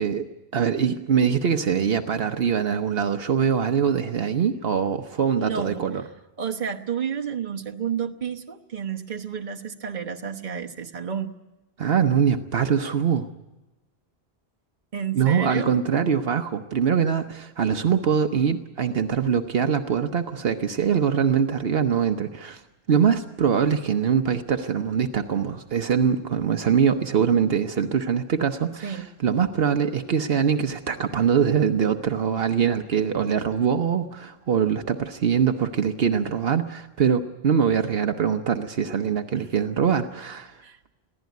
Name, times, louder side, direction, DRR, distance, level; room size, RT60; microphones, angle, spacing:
voice 1, 0.0-6.0 11.8-13.3 15.1-22.6 22.9-40.6, right 7 dB, 70° right, 7 dB, 1.1 m, -23 dB
voice 2, 5.4-5.8 6.4-11.3 14.9-15.7 28.8-29.1 39.3-39.5 40.6-40.8, right 7 dB, 50° right, 3 dB, 1.2 m, -31 dB
22.5 x 15.5 x 9.3 m, 1.0 s
omnidirectional pair, 1.0 m